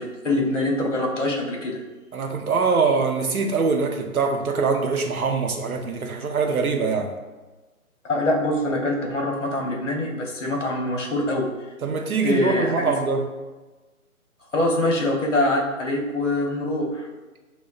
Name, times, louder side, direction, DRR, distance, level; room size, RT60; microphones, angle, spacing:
voice 1, 0.0-1.8 8.0-11.5 12.2-12.9 14.5-17.1, left 1 dB, 55° left, -1 dB, 0.7 m, -24 dB
voice 2, 2.1-7.1 11.8-13.2, right 4 dB, 70° right, 4 dB, 0.6 m, -23 dB
5.1 x 2.0 x 2.3 m, 1.2 s
figure-of-eight pair, 160°, 45 cm